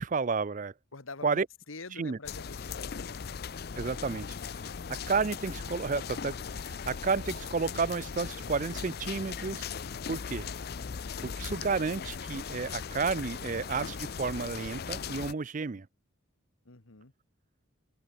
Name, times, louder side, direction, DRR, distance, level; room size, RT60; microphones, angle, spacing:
voice 1, 0.0-0.7 1.2-1.5 1.9-2.2 3.8-4.3 4.9-9.7 10.1-10.5 11.2-15.9, right 4 dB, 40° right, 0.5 m, -31 dB
voice 2, 0.9-1.4 1.7-3.2 16.7-17.1, left 3 dB, 75° left, 1.9 m, -45 dB
sound 1, 2.2-15.3, left 6 dB, 50° left, 0.5 m, -38 dB
head